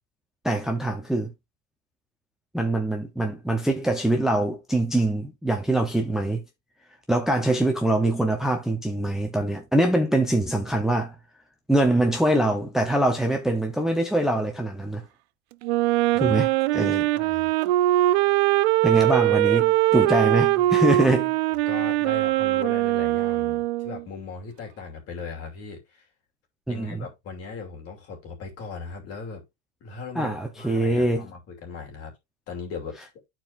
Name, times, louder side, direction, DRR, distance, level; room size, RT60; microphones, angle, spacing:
voice 1, 0.4-1.3 2.5-6.4 7.1-11.1 11.7-15.0 16.2-17.1 18.8-21.3 26.7-27.0 30.1-31.3, right 1 dB, ahead, 0.8 m, -23 dB
Wind instrument woodwind instrument, 15.6-24.0, right 16 dB, 70° right, 0.5 m, -22 dB
voice 2, 17.1-17.5 21.7-26.1 26.7-29.4 29.8-32.1 32.5-33.0, left 5 dB, 45° left, 2.8 m, -38 dB
12.0 x 4.5 x 2.5 m
supercardioid pair, 130°, 34 cm